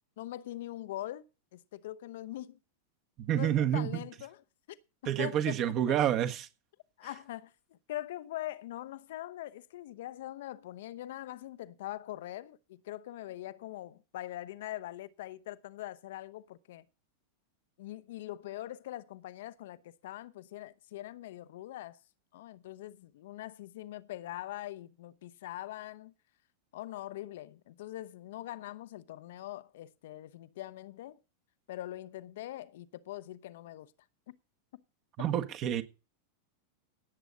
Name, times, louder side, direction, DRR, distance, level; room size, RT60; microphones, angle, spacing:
voice 1, 0.2-1.2 1.5-2.6 3.3-4.4 4.7-4.8 5.0-5.6 5.9-6.0 7.0-16.8 17.8-22.0 22.3-26.1 26.7-31.2 31.7-33.9 34.3-34.4 34.7-34.8, left 14 dB, 55° left, 0.8 m, -42 dB
voice 2, 3.2-4.0 5.0-6.5 35.2-35.8, right 10 dB, 35° right, 1.5 m, -29 dB
17.5 x 8.1 x 4.1 m
figure-of-eight pair, 90°, 0 cm